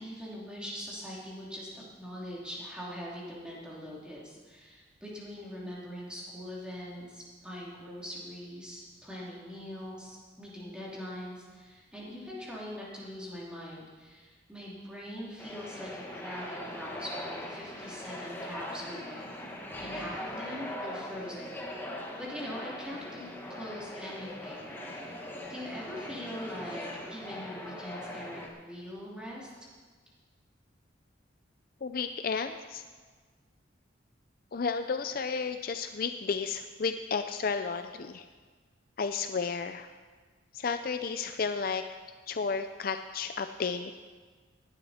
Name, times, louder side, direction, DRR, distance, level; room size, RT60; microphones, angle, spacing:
voice 1, 0.0-19.3 19.8-21.6 22.2-23.3 23.6-25.2 25.5-29.5, equal, 5° right, -6 dB, 3.0 m, -42 dB
sound 1, 15.4-28.5, left 1 dB, 10° left, 1.4 m, -41 dB
voice 2, 31.8-32.8 34.5-38.2 39.0-39.9 40.5-41.8 42.3-43.9, left 5 dB, 50° left, 8 dB, 0.4 m, -32 dB
17.5 x 11.0 x 4.3 m, 1.5 s
head